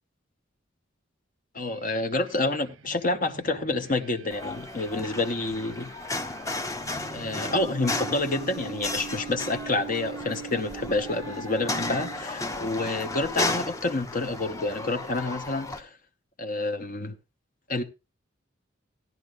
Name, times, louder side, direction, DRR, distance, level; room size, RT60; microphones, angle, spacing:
voice 1, 1.5-5.9 7.1-16.0 16.4-17.2 17.7-17.8, left 2 dB, 45° left, 1.0 m, -28 dB
sound 1, 1.6-12.6, right 7 dB, 85° right, 0.6 m, -43 dB
sound 2, 4.3-15.8, left 2 dB, 15° left, 0.8 m, -34 dB
16.5 x 10.5 x 2.4 m
head